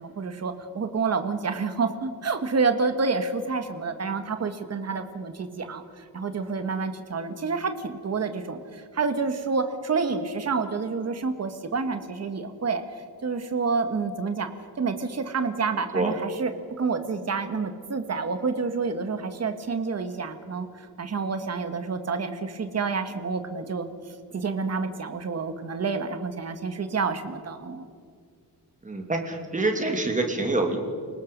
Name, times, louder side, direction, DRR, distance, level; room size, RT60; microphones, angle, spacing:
voice 1, 0.0-12.8 13.2-14.5 14.8-16.5 16.8-20.7 21.0-23.9 24.3-27.9, right 4 dB, 40° right, 8 dB, 1.7 m, -28 dB
voice 2, 28.8-30.8, right 2 dB, 20° right, 3 dB, 2.7 m, -26 dB
29.0 x 19.0 x 5.4 m, 2.1 s
wide cardioid pair, 170°, 38 cm